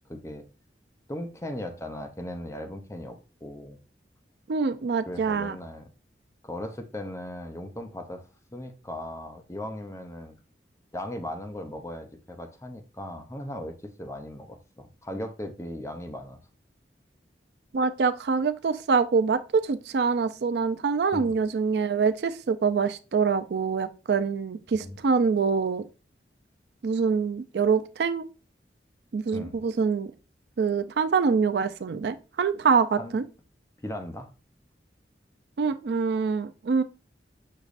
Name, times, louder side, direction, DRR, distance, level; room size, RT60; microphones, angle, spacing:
voice 1, 0.1-0.4 1.1-3.8 5.1-5.9 6.4-10.4 10.9-16.4 21.1-21.4 24.7-25.0 29.3-29.6 33.0-33.1 33.8-34.3, left 1 dB, 15° left, 0.6 m, -38 dB
voice 2, 4.5-5.5 17.7-25.8 26.8-28.2 29.1-30.1 30.6-33.2 35.6-36.8, right 5 dB, 70° right, 0.4 m, -25 dB
6.5 x 3.1 x 2.5 m
head